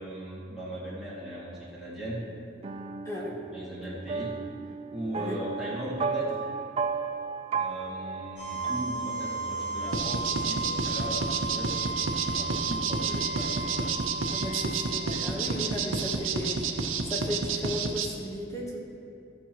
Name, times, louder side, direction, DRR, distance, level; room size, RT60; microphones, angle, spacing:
voice 1, 0.0-2.2 3.5-4.3 4.9-6.4 7.6-11.7 12.2-13.9, right 1 dB, ahead, -10 dB, 2.3 m, -38 dB
sound 1, 2.6-9.6, right 5 dB, 30° right, 0.3 m, -35 dB
voice 2, 3.0-3.4 5.1-5.4 14.3-16.6 17.0-18.8, left 1 dB, 15° left, -2 dB, 1.3 m, -35 dB
sound 2, 8.4-16.1, right 3 dB, 80° left, 2.2 m, -35 dB
sound 3, 9.9-18.1, right 5 dB, 90° right, 0.7 m, -30 dB
13.5 x 7.3 x 3.1 m, 2.6 s
head